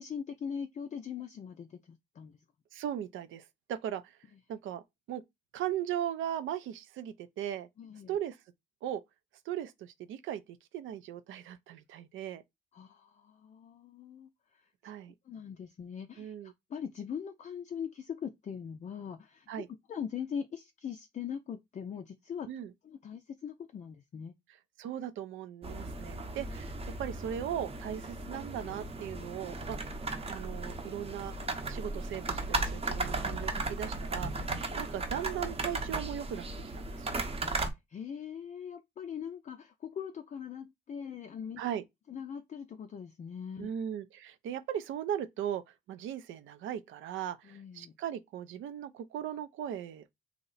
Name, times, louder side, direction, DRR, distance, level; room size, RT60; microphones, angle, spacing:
voice 1, 0.0-2.4 7.8-8.2 12.7-14.9 15.2-22.5 22.8-24.3 37.4-41.6 42.1-43.7 47.4-48.0, left 7 dB, 35° left, 0.4 m, -41 dB
voice 2, 2.7-4.2 4.5-4.8 5.1-5.2 5.5-7.7 8.1-8.4 8.8-9.0 9.5-10.4 10.7-12.4 14.8-15.1 16.2-16.5 19.5-19.7 22.5-22.7 24.8-26.7 27.0-29.9 30.3-31.3 31.6-34.5 34.8-36.5 36.7-37.2 41.6-41.8 43.6-50.1, right 10 dB, 80° right, 0.5 m, -38 dB
sound 1, 25.6-37.7, right 2 dB, 30° right, 0.8 m, -36 dB
2.9 x 2.0 x 3.9 m
cardioid pair, 90°, 20 cm